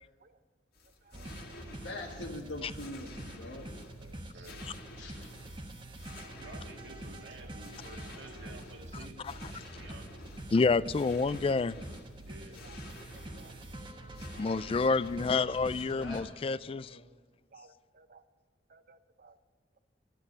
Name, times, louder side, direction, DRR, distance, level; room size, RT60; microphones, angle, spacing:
sound 1, 0.7-15.4, left 2 dB, 55° left, 2.0 m, -52 dB
sound 2, 1.1-16.2, right 1 dB, 25° right, 1.3 m, -45 dB
voice 1, 1.7-3.7 5.0-5.3 15.6-17.0, left 1 dB, 90° left, -4 dB, 1.6 m, -44 dB
voice 2, 4.0-4.7 6.4-10.4 12.2-12.6, right 1 dB, 85° right, 2 dB, 2.1 m, -52 dB
voice 3, 10.5-11.8 14.4-17.0, left 4 dB, 30° left, 17 dB, 0.3 m, -28 dB
voice 4, 13.1-13.6 14.3-14.5 16.7-16.8 17.5-18.2 18.7-19.3, right 4 dB, 50° right, 11 dB, 0.7 m, -58 dB
12.5 x 11.5 x 6.6 m, 1.5 s
head